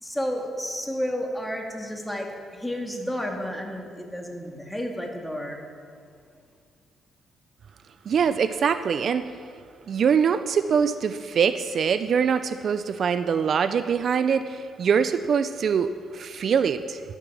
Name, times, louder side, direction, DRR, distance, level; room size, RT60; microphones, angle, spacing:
voice 1, 0.0-5.6, equal, 5° left, 1 dB, 1.9 m, -31 dB
voice 2, 8.1-9.3 9.9-17.0, right 6 dB, 55° right, 11 dB, 0.4 m, -23 dB
11.5 x 9.9 x 6.1 m, 2.2 s
cardioid pair, 90°, 0 cm